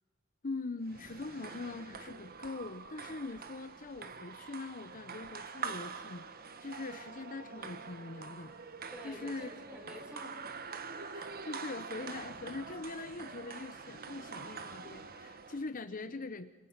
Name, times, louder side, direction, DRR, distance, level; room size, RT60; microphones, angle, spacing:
voice 1, 0.4-6.3 6.6-8.5 9.0-9.5 11.1-16.5, left 3 dB, 40° left, 10 dB, 0.8 m, -42 dB
sound 1, 0.8-15.7, right 5 dB, 45° right, 1.5 m, -45 dB
voice 2, 8.9-10.7 15.8-16.1, equal, 5° right, 2 dB, 4.6 m, -50 dB
28.5 x 27.0 x 5.9 m, 1.4 s
head